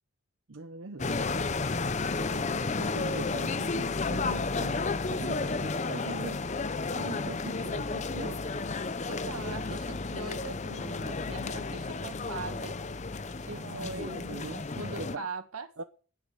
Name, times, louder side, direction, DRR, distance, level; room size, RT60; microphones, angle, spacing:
voice 1, 0.5-1.2 2.3-6.4 6.9-8.4 13.5-15.3 15.8-15.9, right 3 dB, 65° right, 0.8 m, -42 dB
sound 1, 1.0-15.2, left 3 dB, 35° left, 0.6 m, -32 dB
voice 2, 9.1-12.7 13.5-14.3 14.8-15.7, right 3 dB, 85° right, 1.9 m, -41 dB
10.0 x 9.7 x 9.1 m
head